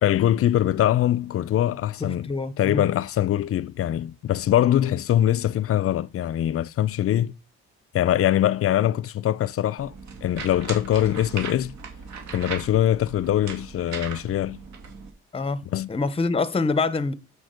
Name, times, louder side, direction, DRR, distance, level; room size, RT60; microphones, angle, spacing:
voice 1, 0.0-2.3 2.6-7.3 7.9-9.9 10.2-11.7 12.3-14.6 15.7-15.9, left 12 dB, 50° left, 0.5 m, -22 dB
voice 2, 2.0-2.8 15.3-15.6 15.9-17.1, left 3 dB, 20° left, 0.8 m, -25 dB
sound 1, 9.8-15.1, right 5 dB, 65° right, 2.6 m, -38 dB
7.1 x 6.2 x 5.1 m
cardioid pair, 90°, 30 cm